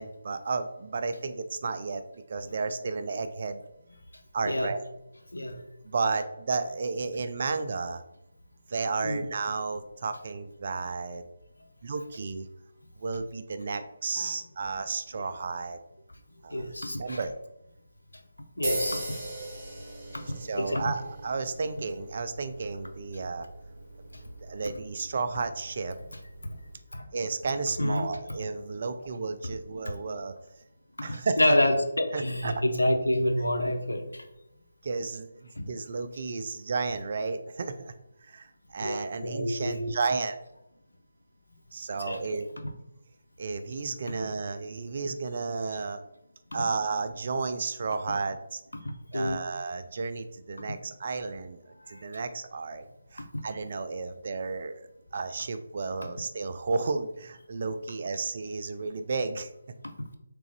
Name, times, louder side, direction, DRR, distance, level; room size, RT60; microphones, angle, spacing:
voice 1, 0.0-2.0 2.3-3.6 4.3-4.8 5.8-8.0 8.7-11.2 11.8-12.5 13.0-15.8 16.4-17.3 20.4-23.5 24.4-26.0 27.1-30.3 31.0-31.6 32.1-32.5 34.8-35.3 35.7-37.9 38.2-40.4 41.7-42.5 43.4-46.0 46.5-48.6 49.1-51.6 51.9-52.8 53.1-54.8 55.1-59.5, right 4 dB, 45° right, 10 dB, 0.3 m, -32 dB
voice 2, 16.5-17.2 18.6-19.2 20.3-20.9 26.4-26.5 26.9-27.0 27.8-28.1 31.1-34.1 35.6-35.7 38.8-39.9 42.0-42.2 48.8-49.4 50.7-50.8 51.9-52.0 53.3-53.4, left 1 dB, 85° left, 5 dB, 0.6 m, -28 dB
sound 1, 18.6-26.7, right 1 dB, 25° right, 1.3 m, -39 dB
3.5 x 3.3 x 3.3 m, 0.87 s
figure-of-eight pair, 155°, 0 cm